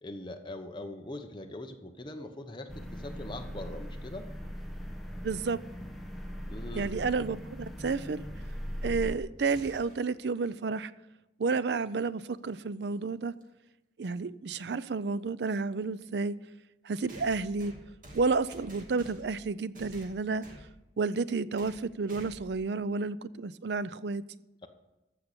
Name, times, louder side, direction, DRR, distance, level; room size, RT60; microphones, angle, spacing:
voice 1, 0.0-4.3 6.5-6.9, left 1 dB, 25° left, 1.0 m, -42 dB
sound 1, 2.7-9.2, equal, ahead, 1.2 m, -39 dB
voice 2, 5.2-5.6 6.7-8.2 8.8-10.9 11.4-13.3 14.0-16.4 16.8-17.7 18.1-20.5 21.0-24.2, right 4 dB, 70° right, 0.5 m, -31 dB
sound 2, 9.5-10.1 12.2-12.3 13.4-13.5 17.1-19.4 19.8-20.7 21.6-21.8 22.1-22.6, equal, 45° right, 2.3 m, -49 dB
14.5 x 5.8 x 6.8 m
head